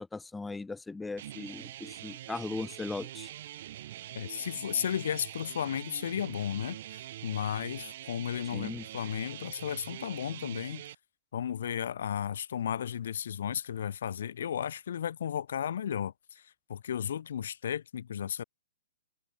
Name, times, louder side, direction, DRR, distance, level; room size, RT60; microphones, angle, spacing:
voice 1, 0.0-3.3 8.5-8.8, left 3 dB, 5° left, 0.7 m, -38 dB
sound 1, 1.2-11.0, right 13 dB, 50° right, 3.5 m, -44 dB
voice 2, 4.1-10.8 11.3-18.4, left 9 dB, 65° left, 5.8 m, -34 dB
hypercardioid pair, 125°, 0 cm